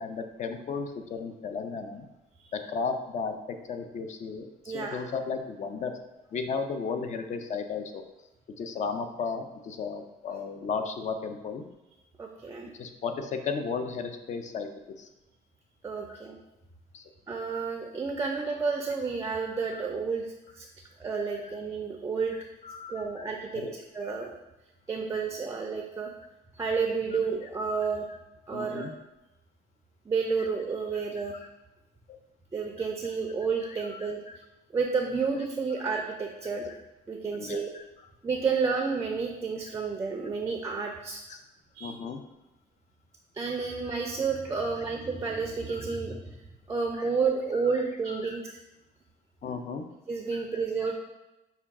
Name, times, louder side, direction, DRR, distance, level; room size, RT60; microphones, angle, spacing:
voice 1, 0.0-2.1 2.5-5.9 6.3-8.0 8.6-11.6 12.7-14.7 15.0-15.1 16.1-16.2 16.9-17.1 17.6-17.7 19.7-19.8 21.4-21.6 22.3-23.3 23.5-23.7 24.0-24.3 25.1-25.2 27.6-27.8 28.1-28.2 28.5-28.9 30.4-30.5 30.9-31.3 33.6-34.4 37.3-37.8 41.3-41.4 41.8-42.2 43.8-43.9 44.6-44.9 45.7-46.0 47.0-47.1 47.6-48.4 49.4-49.9 50.3-50.7, left 5 dB, 45° left, 7 dB, 0.4 m, -35 dB
voice 2, 4.7-5.0 12.2-12.7 15.8-16.4 17.3-20.7 21.0-22.4 22.9-23.6 23.9-24.3 24.9-26.1 26.5-28.1 28.5-28.9 30.1-31.4 32.5-34.2 34.7-36.7 37.1-37.7 38.2-41.2 41.7-42.0 43.3-46.4 46.7-48.4 50.1-50.9, right 5 dB, 20° right, 2 dB, 0.4 m, -30 dB
5.5 x 2.3 x 3.5 m, 1.0 s
cardioid pair, 110°, 17 cm